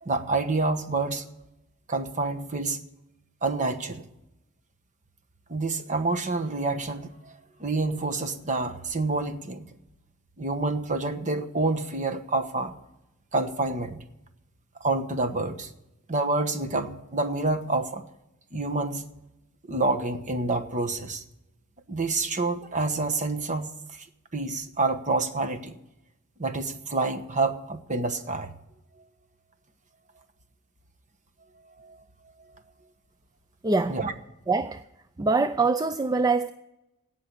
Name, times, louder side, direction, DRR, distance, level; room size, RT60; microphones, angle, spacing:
voice 1, 0.0-1.3 1.9-2.8 3.4-4.1 5.5-7.3 7.6-9.7 10.4-12.8 13.3-14.0 14.8-15.7 16.1-18.0 18.5-19.1 19.6-21.2 21.9-24.1 24.3-25.7 26.4-28.5 31.8-32.0 33.9-34.1, right 3 dB, 35° right, 1.1 m, -28 dB
voice 2, 33.6-34.0 34.5-34.8 35.2-36.5, right 3 dB, 15° right, 0.4 m, -24 dB
17.0 x 5.8 x 9.8 m
head